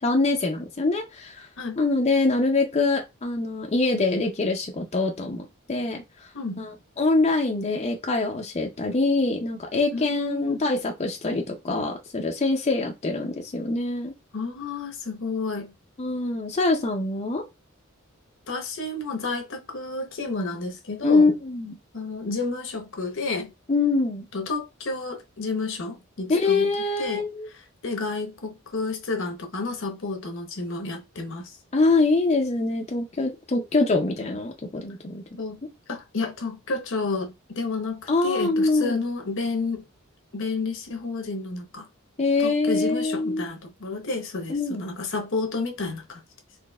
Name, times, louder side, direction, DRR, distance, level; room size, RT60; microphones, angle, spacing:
voice 1, 0.0-1.5 1.8-6.0 6.6-14.1 16.0-17.4 21.0-21.7 23.7-24.2 26.3-27.5 31.7-35.2 38.1-39.0 42.2-43.4 44.5-44.8, left 3 dB, 30° left, 0.5 m, -24 dB
voice 2, 9.9-10.6 14.3-15.7 18.5-21.3 21.9-23.5 24.3-27.3 27.5-31.5 35.4-35.6 35.9-39.8 40.3-41.9 42.4-46.2, left 3 dB, 65° left, 0.8 m, -31 dB
4.0 x 2.8 x 2.3 m
head